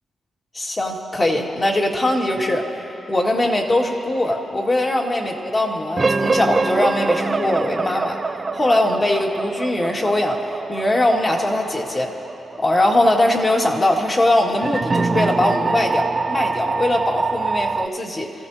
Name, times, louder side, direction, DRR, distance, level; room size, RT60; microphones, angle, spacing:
voice 1, 0.5-2.8 3.1-8.2 8.5-10.4 10.7-12.1 12.6-18.3, left 1 dB, 30° left, 0 dB, 2.0 m, -21 dB
sound 1, 6.0-17.9, right 4 dB, 35° right, 0.4 m, -24 dB
29.0 x 15.5 x 2.8 m, 2.9 s
cardioid pair, 90°, 0 cm